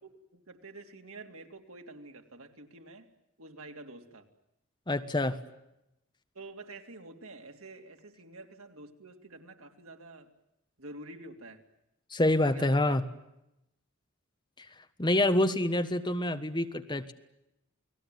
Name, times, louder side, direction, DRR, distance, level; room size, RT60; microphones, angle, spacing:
voice 1, 0.0-3.1 3.4-4.3 6.3-10.3 10.8-11.6 12.4-13.0, right 2 dB, 85° right, 4 dB, 3.2 m, -48 dB
voice 2, 4.9-5.4 12.1-13.0 14.6-14.7 15.0-17.1, left 1 dB, 20° left, 9 dB, 1.4 m, -27 dB
29.5 x 19.5 x 9.3 m, 0.88 s
head